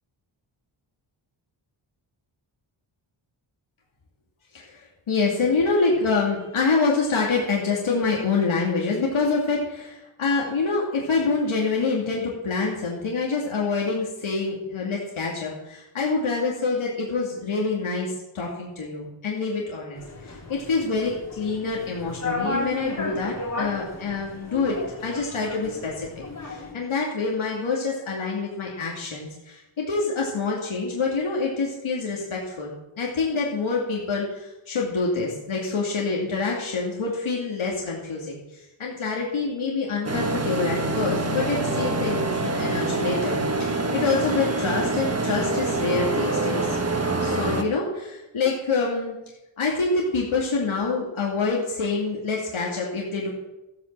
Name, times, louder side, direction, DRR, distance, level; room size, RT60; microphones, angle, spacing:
voice 1, 4.5-46.8 47.2-49.1 49.6-53.3, left 4 dB, 80° left, -3 dB, 2.6 m, -26 dB
sound 1, 20.0-26.7, left 2 dB, 35° left, 3.2 m, -34 dB
sound 2, 40.0-47.6, right 2 dB, 30° right, 1.6 m, -25 dB
14.5 x 8.6 x 7.5 m, 0.97 s
wide cardioid pair, 145°, 48 cm